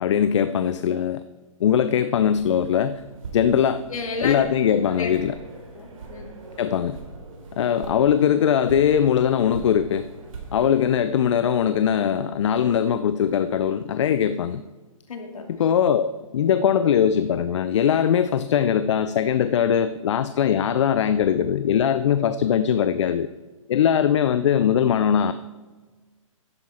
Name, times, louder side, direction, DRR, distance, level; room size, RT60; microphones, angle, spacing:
voice 1, 0.0-1.2 1.6-3.0 3.3-3.8 4.2-5.4 6.6-7.0 7.6-10.1 10.5-14.6 15.5-23.3 23.7-25.3, left 8 dB, 55° left, 12 dB, 0.5 m, -21 dB
sound 1, 2.4-11.1, right 3 dB, 70° right, 3.2 m, -41 dB
voice 2, 3.9-4.5 4.9-5.2 5.7-6.3 15.1-15.5, left 4 dB, 70° left, 3 dB, 2.3 m, -31 dB
13.0 x 10.5 x 4.3 m, 1.3 s
hypercardioid pair, 145°, 18 cm